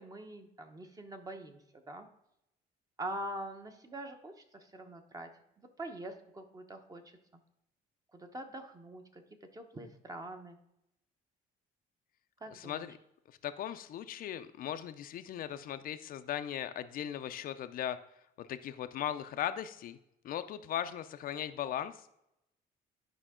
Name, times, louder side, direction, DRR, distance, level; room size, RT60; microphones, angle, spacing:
voice 1, 0.0-2.1 3.0-5.3 5.6-7.0 8.1-9.2 9.5-10.6 12.4-12.9, right 1 dB, 20° right, 6 dB, 1.0 m, -44 dB
voice 2, 12.5-12.9 13.4-18.0 18.4-20.0 20.2-22.2, left 10 dB, 60° left, 10 dB, 0.5 m, -38 dB
11.0 x 5.1 x 3.7 m, 0.81 s
cardioid pair, 110°, 17 cm